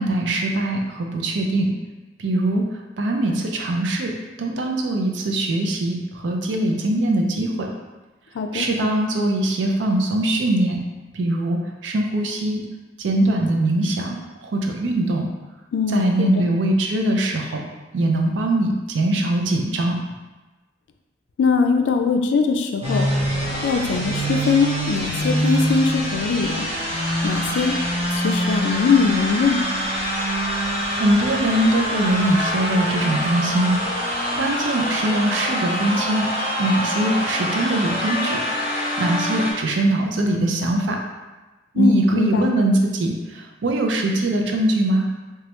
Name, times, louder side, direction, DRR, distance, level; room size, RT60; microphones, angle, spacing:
voice 1, 0.0-1.7 2.2-2.7 3.0-7.7 8.5-10.8 11.1-12.6 13.0-14.2 14.4-15.3 15.9-17.6 17.9-20.0 30.9-36.3 36.6-38.4 39.0-41.0 41.7-45.1, right 1 dB, 80° right, 2 dB, 0.4 m, -22 dB
voice 2, 8.3-8.7 15.7-16.5 21.4-23.1 23.6-26.7 27.2-27.8 28.1-29.6 41.8-42.5, left 5 dB, 75° left, 5 dB, 0.3 m, -21 dB
sound 1, 22.8-39.5, equal, 35° right, 0.8 m, -25 dB
3.1 x 2.3 x 2.9 m, 1.2 s
head